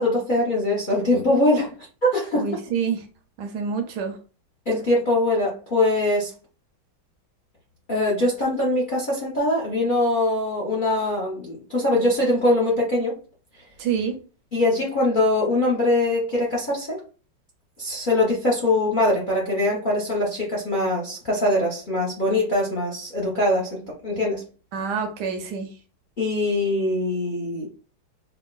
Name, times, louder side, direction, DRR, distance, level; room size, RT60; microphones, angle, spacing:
voice 1, 0.0-1.7 2.0-2.5 4.7-6.3 7.9-13.1 14.5-17.0 17.8-24.4 26.2-27.7, left 1 dB, 60° left, -4 dB, 0.5 m, -22 dB
voice 2, 2.4-3.0 3.4-4.2 13.8-14.1 24.7-25.7, right 6 dB, 75° right, 6 dB, 1.0 m, -27 dB
4.5 x 2.1 x 2.3 m, 0.37 s
omnidirectional pair, 2.2 m